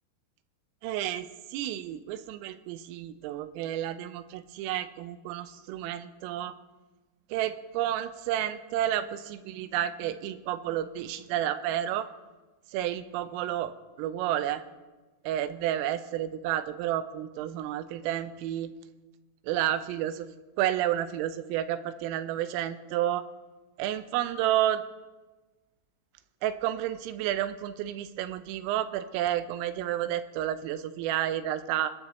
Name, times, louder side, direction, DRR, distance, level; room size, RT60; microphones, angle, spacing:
voice 1, 0.8-6.5 7.3-12.1 12.7-14.6 15.3-18.7 19.5-20.3 20.6-23.2 23.8-24.8 26.4-31.9, right 12 dB, 85° right, 12 dB, 3.5 m, -31 dB
23.5 x 19.5 x 3.1 m, 1.2 s
omnidirectional pair, 5.8 m